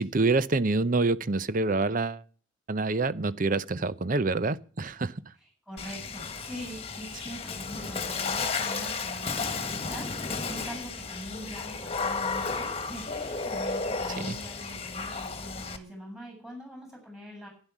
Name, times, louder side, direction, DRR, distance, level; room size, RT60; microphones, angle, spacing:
voice 1, 0.0-2.2 2.7-5.1 14.2-14.4, right 3 dB, 45° right, 0.7 m, -26 dB
voice 2, 5.4-17.5, equal, 5° right, 7.6 m, -43 dB
Water / Splash splatter, 5.8-15.8, left 4 dB, 30° left, 1.7 m, -33 dB
12.0 x 10.5 x 7.3 m
head